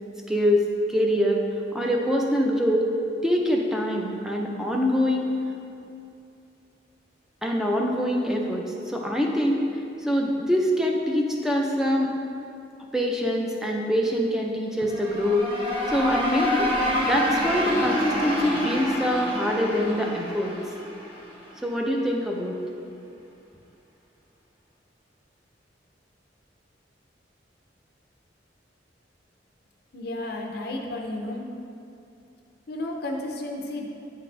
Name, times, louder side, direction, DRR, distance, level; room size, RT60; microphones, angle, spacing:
voice 1, 0.3-1.4 1.7-2.9 3.2-5.3 7.4-9.6 10.0-12.1 12.9-15.5 15.9-16.7 17.1-20.6 21.6-22.6, equal, 5° right, 0 dB, 0.5 m, -24 dB
sound 1, 14.8-21.6, left 1 dB, 30° right, 1.1 m, -28 dB
voice 2, 29.9-31.5 32.7-33.8, left 1 dB, 55° left, 1 dB, 0.6 m, -32 dB
9.2 x 3.9 x 3.3 m, 2.7 s
head